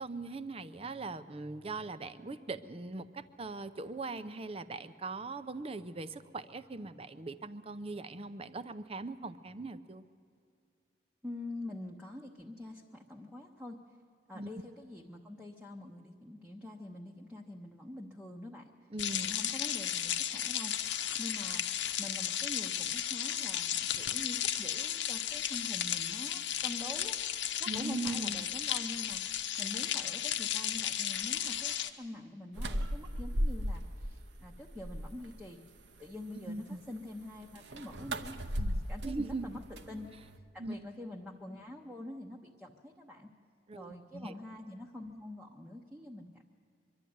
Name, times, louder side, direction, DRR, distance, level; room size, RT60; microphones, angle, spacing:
voice 1, 0.0-10.0 14.3-14.5 18.9-19.3 27.7-28.5 36.5-36.8 39.0-39.5 40.6-40.8 43.7-44.3, right 3 dB, 30° right, 13 dB, 0.6 m, -40 dB
voice 2, 11.2-13.8 14.3-18.7 19.2-20.7 21.2-21.7 22.0-29.2 29.6-35.6 36.0-40.1 40.5-43.3 43.7-46.5, left 1 dB, 5° right, -1 dB, 0.8 m, -45 dB
sound 1, 19.0-31.9, left 11 dB, 80° left, 0.9 m, -34 dB
sound 2, 32.6-34.1 34.5-35.3 37.5-40.4, equal, 75° right, 0.9 m, -36 dB
23.5 x 11.5 x 9.4 m, 2.5 s
head